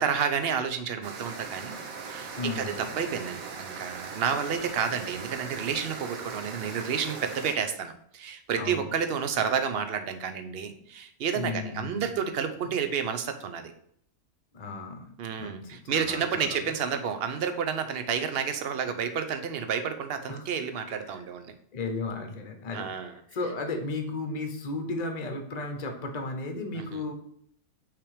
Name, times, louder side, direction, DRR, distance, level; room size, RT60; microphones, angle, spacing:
voice 1, 0.0-1.8 2.0-13.7 15.2-21.5 22.7-23.1 26.7-27.0, right 7 dB, 55° right, 8 dB, 0.8 m, -30 dB
sound 1, 1.0-7.5, right 5 dB, 80° right, 1.3 m, -40 dB
voice 2, 2.3-3.0 8.5-8.9 11.3-12.1 14.5-15.1 15.4-16.6 20.3-20.5 21.7-27.1, left 3 dB, 35° left, 5 dB, 0.9 m, -35 dB
5.9 x 3.4 x 4.9 m, 0.67 s
omnidirectional pair, 1.5 m